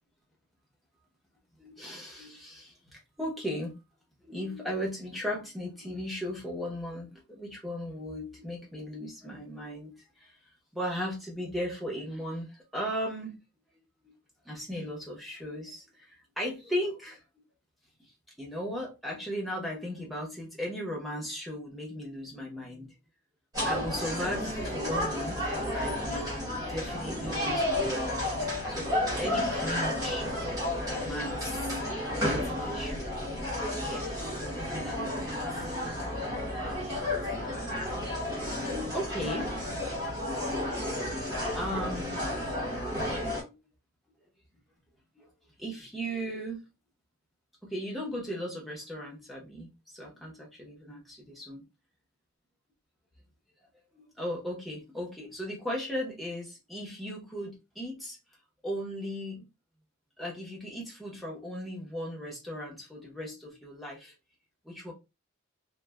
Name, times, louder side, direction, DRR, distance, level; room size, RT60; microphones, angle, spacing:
voice 1, 1.6-3.7 4.2-10.4 10.7-13.3 14.0-14.1 14.4-17.2 18.0-22.9 23.6-26.4 26.7-30.3 30.9-31.6 32.4-33.1 33.7-34.1 34.8-35.7 36.6-37.4 37.9-39.6 40.5-41.0 41.3-42.3 43.4-43.5 45.2-45.3 45.6-46.6 47.6-51.6 53.9-58.2 58.6-59.5 60.2-64.1 64.6-64.9, equal, ahead, 0.7 m, -37 dB
sound 1, 23.5-43.4, left 1 dB, 20° right, 1.0 m, -32 dB
3.2 x 2.2 x 2.2 m
head